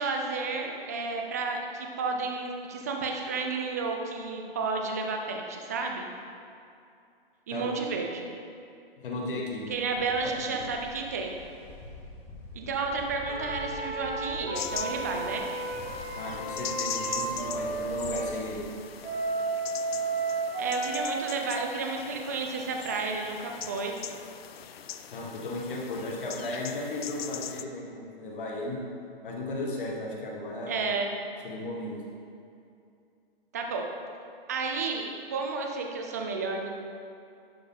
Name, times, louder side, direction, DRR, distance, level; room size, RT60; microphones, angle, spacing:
voice 1, 0.0-6.1 7.5-8.3 9.7-11.3 12.5-15.4 20.6-24.0 30.7-31.1 33.5-33.9 34.5-36.7, right 4 dB, 15° right, 2 dB, 0.3 m, -31 dB
voice 2, 9.0-9.6 10.5-10.6 16.2-18.6 25.1-28.8 29.2-30.9 31.4-31.9, left 2 dB, 60° left, -2 dB, 1.7 m, -35 dB
Ocean, 9.7-19.4, left 2 dB, 10° left, 0.8 m, -47 dB
sound 1, 13.3-18.3 19.0-21.2, right 3 dB, 80° right, 1.4 m, -33 dB
sound 2, 14.5-27.6, left 9 dB, 75° left, 0.5 m, -41 dB
11.0 x 4.6 x 4.1 m, 2.5 s
hypercardioid pair, 150°, 30 cm